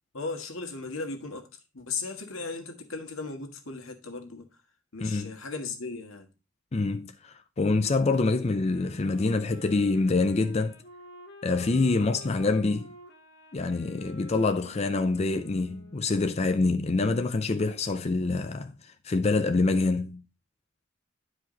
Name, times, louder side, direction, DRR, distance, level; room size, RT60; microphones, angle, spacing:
voice 1, 0.1-1.5 1.7-4.5 4.9-6.3, left 4 dB, 85° left, 1.7 m, -36 dB
voice 2, 5.0-5.3 6.7-10.8 11.4-12.9 13.5-20.2, left 3 dB, 30° left, 0.5 m, -26 dB
sound 1, 8.5-16.3, equal, 55° left, 1.6 m, -50 dB
10.0 x 4.9 x 3.9 m
head